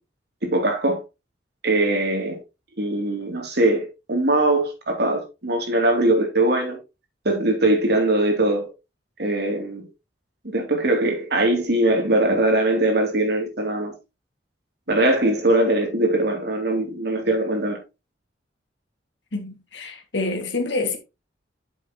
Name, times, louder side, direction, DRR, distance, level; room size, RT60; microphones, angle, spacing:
voice 1, 0.4-1.0 1.6-2.4 2.8-6.8 7.2-8.7 9.2-9.8 10.5-13.9 14.9-17.8, right 1 dB, 60° right, 3.1 m, -21 dB
voice 2, 19.3-21.0, left 3 dB, 75° left, 2.3 m, -27 dB
8.6 x 7.1 x 3.0 m
head